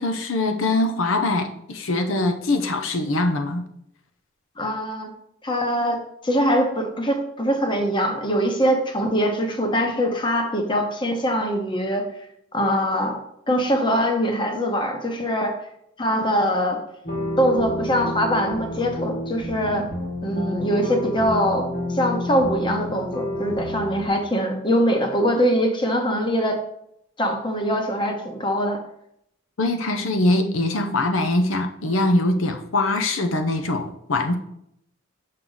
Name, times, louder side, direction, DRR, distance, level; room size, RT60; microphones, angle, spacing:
voice 1, 0.0-3.6 29.6-34.4, left 2 dB, 80° left, 6 dB, 0.7 m, -22 dB
voice 2, 4.6-5.1 5.4-12.1 12.5-13.2 13.5-15.6 16.0-16.8 17.4-19.9 20.2-26.6 27.2-28.8, equal, 25° left, 4 dB, 1.0 m, -23 dB
sound 1, 17.0-24.1, left 1 dB, 50° left, 2.0 m, -29 dB
6.6 x 5.9 x 3.9 m, 0.75 s
head